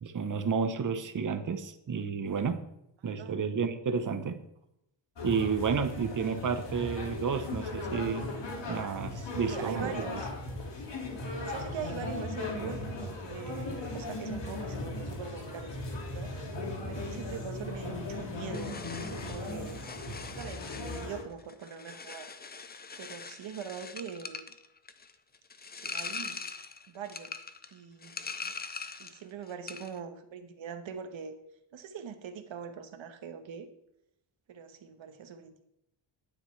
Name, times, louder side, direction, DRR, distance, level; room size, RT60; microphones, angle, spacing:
voice 1, 0.0-2.6 3.0-4.4 5.2-8.3 8.7-10.1, right 6 dB, 40° right, 9 dB, 0.9 m, -31 dB
sound 1, 5.2-21.2, left 2 dB, 60° left, 2.3 m, -37 dB
voice 2, 9.4-10.3 11.4-16.3 16.9-19.8 20.3-22.3 23.0-24.5 25.8-26.4 26.9-27.4 27.7-28.5 29.0-31.3 31.7-33.7 34.5-35.7, right 7 dB, 70° right, 7 dB, 1.2 m, -42 dB
sound 2, 18.5-29.2 29.5-30.0, left 4 dB, 20° left, 0.5 m, -42 dB
10.0 x 9.0 x 3.2 m, 0.81 s
wide cardioid pair, 120°, 48 cm